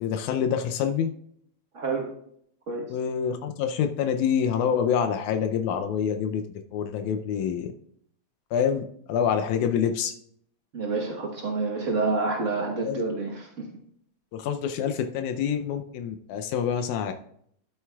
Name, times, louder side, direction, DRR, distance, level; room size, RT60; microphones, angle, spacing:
voice 1, 0.0-1.1 2.9-7.7 8.5-10.1 12.8-13.0 14.3-17.1, left 8 dB, 90° left, 6 dB, 2.1 m, -26 dB
voice 2, 1.7-2.1 2.7-2.8 10.7-13.7, right 3 dB, 90° right, 0 dB, 0.6 m, -28 dB
13.0 x 7.8 x 2.3 m, 0.68 s
omnidirectional pair, 3.4 m